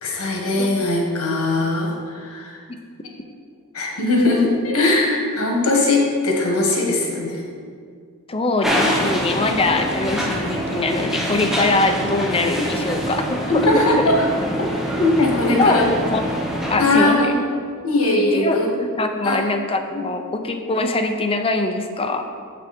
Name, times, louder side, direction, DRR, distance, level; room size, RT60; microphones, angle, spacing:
voice 1, 0.0-2.6 3.7-7.4 13.5-14.2 15.0-15.9 16.8-17.4 17.8-18.7 19.2-19.4 19.9-20.0, left 2 dB, 90° left, 0 dB, 1.6 m, -20 dB
voice 2, 8.3-14.0 15.2-16.2 16.7-17.3 18.3-22.2, left 2 dB, 25° left, 5 dB, 0.6 m, -22 dB
sound 1, 8.6-16.8, equal, ahead, 0.8 m, -25 dB
7.5 x 6.1 x 4.3 m, 2.1 s
head